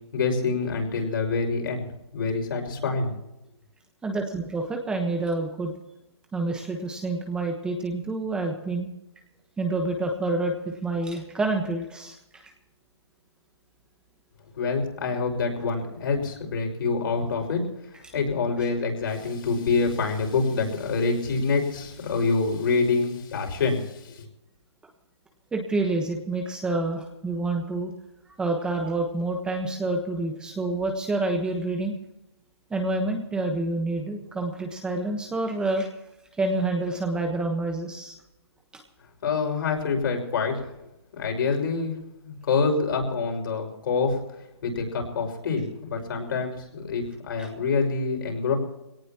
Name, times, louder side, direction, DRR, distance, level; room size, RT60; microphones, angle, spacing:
voice 1, 0.1-1.8 2.1-3.1 14.6-17.6 18.1-24.3 39.2-40.6 41.1-41.9 42.2-44.2 44.6-48.5, left 4 dB, 50° left, 2 dB, 5.7 m, -26 dB
voice 2, 4.0-5.7 6.3-8.9 9.6-12.2 12.4-12.5 25.5-27.9 28.4-31.9 32.7-35.9 36.4-38.1 47.4-47.5, right 2 dB, 5° right, 3 dB, 1.2 m, -28 dB
22.0 x 18.0 x 3.0 m, 0.89 s
hypercardioid pair, 160°, 14 cm